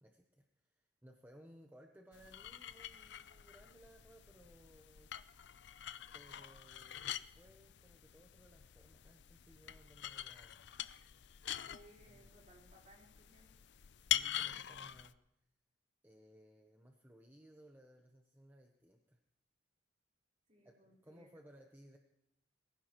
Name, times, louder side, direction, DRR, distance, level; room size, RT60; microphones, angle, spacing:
voice 1, 0.0-5.1 6.1-10.6 12.1-12.3 14.0-15.2 16.0-19.2 20.6-22.0, equal, 10° right, 2 dB, 0.9 m, -61 dB
sound 1, 2.1-15.1, left 12 dB, 65° left, 0.5 m, -44 dB
voice 2, 11.7-13.5 20.5-21.3, right 1 dB, 40° right, -3 dB, 4.2 m, -63 dB
22.0 x 15.5 x 3.1 m, 0.83 s
head